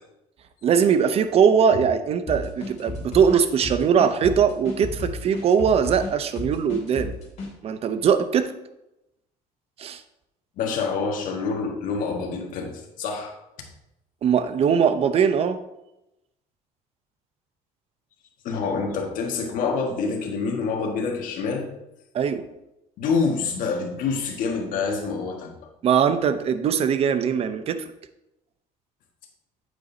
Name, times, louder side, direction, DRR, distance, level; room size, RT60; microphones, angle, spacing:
voice 1, 0.6-7.1 7.6-8.5 9.8-10.0 14.2-15.6 22.1-22.4 25.8-27.8, right 7 dB, 40° right, 11 dB, 0.7 m, -21 dB
sound 1, 2.3-7.5, left 3 dB, 45° left, 2.7 m, -33 dB
voice 2, 10.6-13.3 18.4-21.7 23.0-25.5, left 4 dB, 65° left, 2 dB, 1.7 m, -27 dB
9.2 x 8.2 x 2.8 m, 0.90 s
cardioid pair, 135°, 15 cm